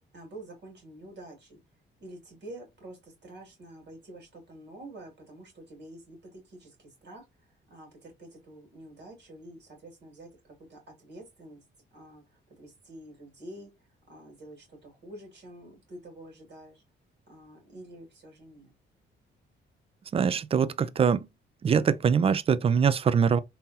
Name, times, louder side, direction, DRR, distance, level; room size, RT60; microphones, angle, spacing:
voice 1, 0.1-1.6 2.0-11.6 11.9-16.8 17.3-18.7, right 1 dB, 60° right, 2.2 m, -48 dB
voice 2, 20.1-21.2 21.6-23.4, right 6 dB, 30° right, 0.3 m, -23 dB
3.7 x 2.8 x 2.6 m
cardioid pair, 90°, 20 cm